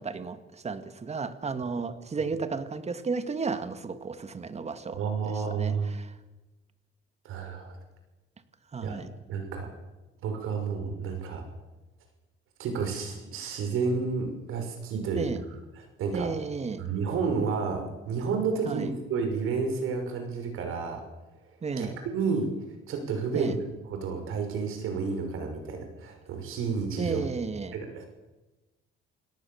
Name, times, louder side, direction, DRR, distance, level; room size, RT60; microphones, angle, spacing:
voice 1, 0.0-6.1 8.7-9.1 15.2-15.4 16.1-16.8 18.7-18.9 21.6-21.9 23.3-23.5 27.0-27.8, right 4 dB, 30° right, 10 dB, 1.9 m, -33 dB
voice 2, 4.9-5.9 7.2-7.8 8.8-9.0 9.3-9.7 10.2-11.5 12.6-15.3 16.0-16.3 16.8-21.0 21.8-22.5 22.9-23.6 23.9-27.2 27.7-28.1, right 5 dB, 80° right, 5 dB, 6.1 m, -30 dB
29.0 x 18.0 x 7.2 m, 1.1 s
cardioid pair, 110°, 21 cm